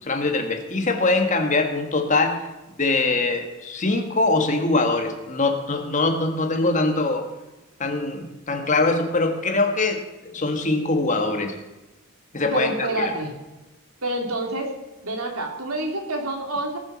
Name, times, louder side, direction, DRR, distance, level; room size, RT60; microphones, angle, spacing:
voice 1, 0.0-2.5 2.8-7.3 7.8-11.6 12.3-13.0, left 3 dB, 35° left, 4 dB, 1.7 m, -23 dB
voice 2, 12.5-13.3 14.0-14.7 15.0-16.8, right 2 dB, 90° right, 2 dB, 3.0 m, -27 dB
19.0 x 7.2 x 6.3 m, 1.1 s
head